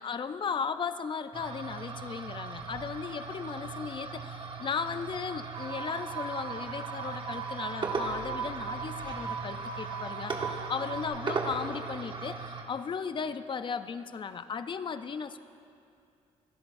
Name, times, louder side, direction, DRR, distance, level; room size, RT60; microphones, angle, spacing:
voice 1, 0.0-15.4, left 6 dB, 40° left, 11 dB, 0.5 m, -36 dB
sound 1, 1.3-12.6, right 4 dB, 40° right, 1.2 m, -38 dB
sound 2, 5.5-11.1, right 7 dB, 85° right, 1.6 m, -39 dB
26.5 x 10.5 x 2.6 m, 2.5 s
cardioid pair, 90°, 12 cm